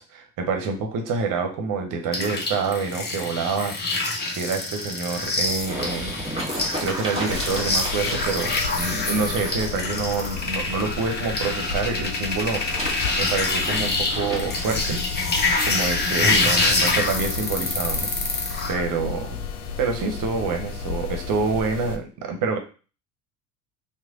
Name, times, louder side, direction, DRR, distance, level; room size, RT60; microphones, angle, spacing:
voice 1, 0.0-6.1 6.4-15.0 15.6-19.4 19.8-22.6, right 4 dB, 45° right, 4 dB, 0.9 m, -27 dB
sound 1, 2.1-18.7, left 3 dB, 25° left, 0.8 m, -26 dB
sound 2, 5.2-11.3 12.2-14.7 15.3-15.4, equal, 15° right, 1.7 m, -33 dB
sound 3, 7.3-22.0, left 5 dB, 85° left, 0.6 m, -33 dB
3.2 x 2.2 x 3.7 m, 0.36 s
hypercardioid pair, 70°, 45 cm